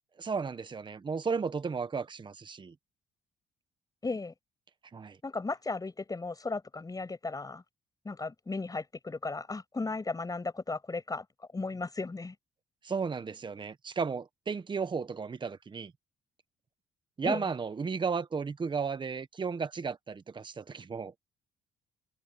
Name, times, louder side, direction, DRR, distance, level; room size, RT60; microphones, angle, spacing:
voice 1, 0.2-2.7 4.9-5.2 12.8-15.9 17.2-21.1, right 5 dB, 35° right, 1.4 m, -34 dB
voice 2, 4.0-4.3 5.2-7.6 8.0-12.4 17.2-17.5, left 3 dB, 25° left, 7.3 m, -36 dB
supercardioid pair, 70°, 14 cm